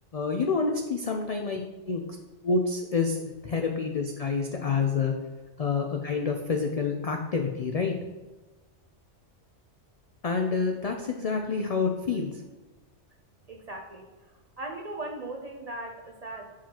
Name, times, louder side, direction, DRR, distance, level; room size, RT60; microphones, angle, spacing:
voice 1, 0.1-2.0 2.4-3.2 3.4-5.1 5.6-7.9 10.2-12.4, left 4 dB, 70° left, 3 dB, 0.3 m, -28 dB
voice 2, 13.5-14.3 14.6-16.5, right 2 dB, 50° right, 2 dB, 0.4 m, -38 dB
7.4 x 4.9 x 2.8 m, 1.2 s
omnidirectional pair, 1.2 m